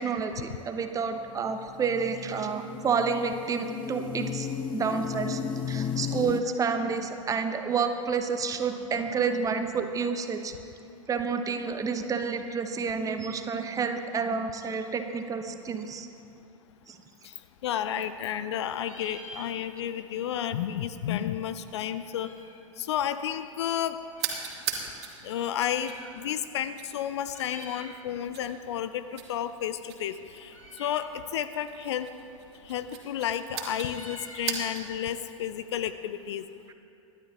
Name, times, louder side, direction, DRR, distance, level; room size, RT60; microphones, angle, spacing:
voice 1, 0.0-5.4 5.7-10.5 11.1-16.1 16.9-17.0, right 5 dB, 20° right, 7 dB, 1.1 m, -29 dB
sound 1, 1.3-6.4, left 7 dB, 30° left, 0.8 m, -34 dB
Meow, 17.5-18.5 18.7-20.0 20.3-20.4 20.6-22.7 23.3-24.5 25.3-26.5 26.8-27.0 27.2-28.0 28.4-36.2, left 1 dB, 85° left, 2.1 m, -49 dB
voice 2, 17.6-22.3 22.8-24.0 25.2-30.5 30.8-32.1 32.7-36.4, left 10 dB, 55° left, 12 dB, 0.6 m, -31 dB
sound 2, 24.1-35.0, right 7 dB, 55° right, 2.6 m, -40 dB
25.5 x 12.0 x 3.0 m, 2.6 s
figure-of-eight pair, 90°, 17 cm